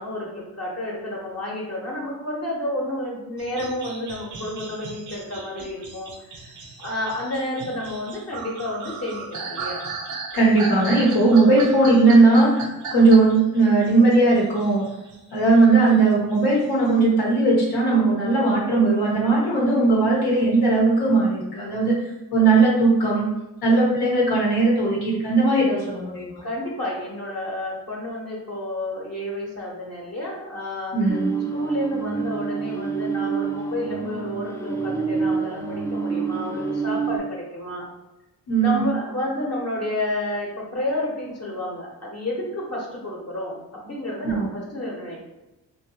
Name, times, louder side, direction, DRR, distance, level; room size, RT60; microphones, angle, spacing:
voice 1, 0.0-6.5 6.8-9.8 26.4-31.2 31.5-37.8 38.6-45.3, left 1 dB, 40° left, -4 dB, 0.9 m, -30 dB
sound 1, 3.4-15.2 15.6-16.9, right 4 dB, 50° right, 0.6 m, -36 dB
voice 2, 10.3-12.6 12.9-14.8 15.3-22.0 22.3-23.3 23.6-26.4 30.9-31.3 38.5-38.9 44.2-44.4, right 3 dB, 80° left, -4 dB, 0.9 m, -18 dB
sound 2, 31.1-37.2, right 5 dB, 10° left, 0.3 m, -27 dB
2.6 x 2.2 x 2.8 m, 1.0 s
cardioid pair, 65°, 38 cm